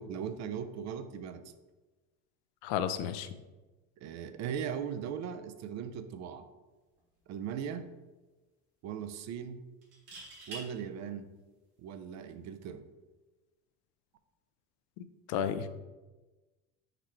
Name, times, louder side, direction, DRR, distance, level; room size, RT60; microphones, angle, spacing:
voice 1, 0.0-1.4 4.0-6.4 7.3-7.9 8.8-9.7 10.5-11.3 11.8-12.8, right 8 dB, 50° right, 10 dB, 0.5 m, -39 dB
voice 2, 2.6-3.3 15.3-15.7, left 8 dB, 80° left, 11 dB, 0.5 m, -32 dB
sound 1, 7.0-7.2 7.5-7.6 9.8-10.6 12.5-12.7, right 2 dB, 90° right, 1.4 m, -45 dB
4.3 x 3.9 x 3.1 m, 1.2 s
supercardioid pair, 90°, 34 cm